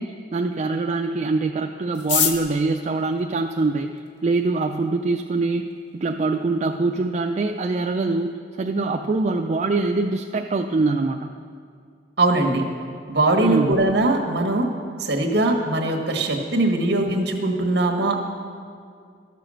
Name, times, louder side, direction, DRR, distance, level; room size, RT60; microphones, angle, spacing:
voice 1, 0.0-5.6 6.0-11.4 13.4-13.8, right 3 dB, 40° right, 3 dB, 0.3 m, -24 dB
sound 1, 1.9-4.2 5.0-5.1 5.3-5.4 5.6-6.1 6.5-6.6 6.7-7.2 7.5-7.7 8.0-8.3, left 7 dB, 75° left, 0.8 m, -27 dB
voice 2, 12.2-12.6 13.1-14.7 15.0-18.2, right 2 dB, 60° right, 2 dB, 1.3 m, -21 dB
12.5 x 6.8 x 6.3 m, 2.2 s
head